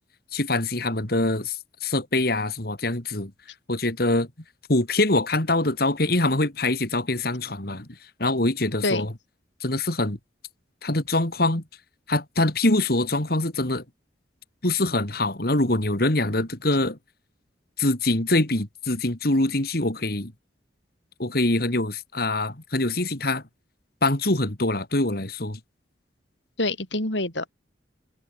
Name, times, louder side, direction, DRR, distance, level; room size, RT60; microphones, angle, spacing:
voice 1, 0.3-3.3 3.7-4.3 4.7-7.9 8.2-9.1 9.6-10.2 10.8-11.6 12.1-13.8 14.6-17.0 17.8-20.3 21.2-23.4 24.0-25.6, left 2 dB, 55° left, 2.9 m, -24 dB
voice 2, 26.6-27.5, left 2 dB, 75° left, 7.5 m, -26 dB
head